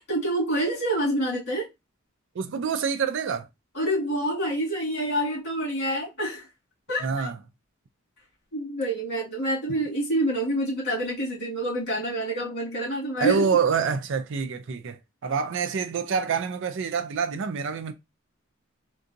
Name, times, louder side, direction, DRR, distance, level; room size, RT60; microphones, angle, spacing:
voice 1, 0.0-1.7 3.7-6.5 6.9-7.3 8.5-13.5, right 1 dB, 55° left, 2.1 m, -27 dB
voice 2, 2.3-3.5 7.0-7.4 13.2-17.9, right 6 dB, 60° right, 0.4 m, -26 dB
3.7 x 2.3 x 2.6 m
head